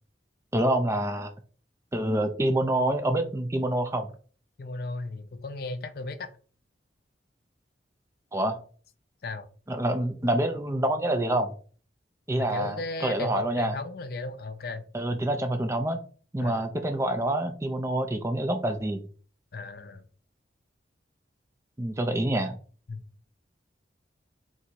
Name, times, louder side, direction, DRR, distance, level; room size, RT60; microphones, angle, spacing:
voice 1, 0.5-1.3 1.9-4.1 8.3-8.6 9.7-11.5 12.3-13.8 14.9-16.0 16.3-19.0 21.8-22.6, right 1 dB, 15° right, 0.4 m, -27 dB
voice 2, 4.6-6.3 9.2-9.5 12.4-14.9 16.4-16.7 19.5-20.0 22.9-23.0, left 3 dB, 55° left, 0.4 m, -36 dB
3.9 x 2.6 x 4.5 m
head